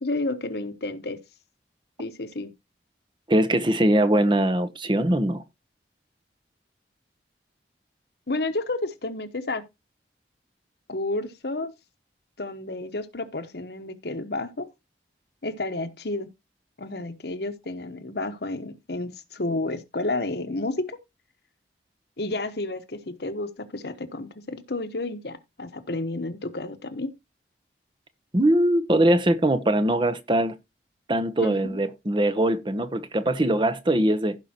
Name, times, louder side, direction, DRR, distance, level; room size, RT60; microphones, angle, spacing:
voice 1, 0.0-1.2 2.0-2.5 8.3-9.6 10.9-11.7 12.4-14.7 15.4-16.3 16.8-21.0 22.2-27.1 31.4-31.8, left 2 dB, 65° left, 1.1 m, -31 dB
voice 2, 3.3-5.4 28.3-30.5 31.1-34.4, right 1 dB, 25° right, 0.8 m, -22 dB
16.0 x 5.3 x 2.8 m
head